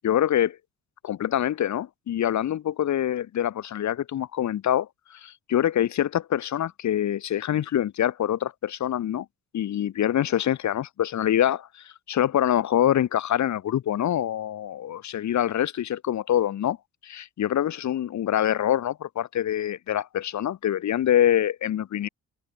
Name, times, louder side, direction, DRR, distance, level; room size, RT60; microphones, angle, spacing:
voice 1, 0.0-0.6 1.0-9.3 9.5-16.8 17.0-22.1, left 11 dB, 70° left, 4.2 m, -25 dB
cardioid pair, 90°, 30 cm